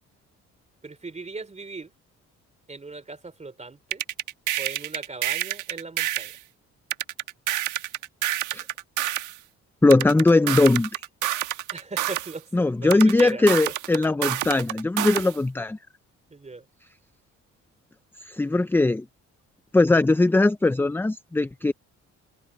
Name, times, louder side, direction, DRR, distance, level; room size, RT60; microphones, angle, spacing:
voice 1, 0.8-1.9 2.7-4.0 4.6-6.3 11.7-12.5 12.8-13.4 16.3-16.7, right 3 dB, 20° right, 3.0 m, -38 dB
sound 1, 3.9-6.4 6.9-9.4 9.9-12.4 12.9-15.4, right 13 dB, 85° right, 1.4 m, -28 dB
voice 2, 9.8-11.0 12.5-15.8 18.3-19.0 19.7-21.7, left 2 dB, 5° left, 0.5 m, -20 dB
cardioid pair, 90°, 30 cm